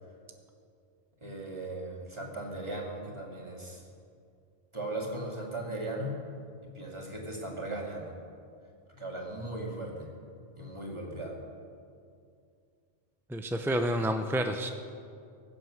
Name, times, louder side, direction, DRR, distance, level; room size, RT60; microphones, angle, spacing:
voice 1, 1.2-3.9 4.7-6.2 6.6-8.1 8.9-10.1 10.6-11.4, right 1 dB, 25° right, -1 dB, 2.4 m, -38 dB
voice 2, 13.3-14.7, equal, 5° right, 5 dB, 0.4 m, -29 dB
21.5 x 7.8 x 6.4 m, 2.4 s
omnidirectional pair, 1.2 m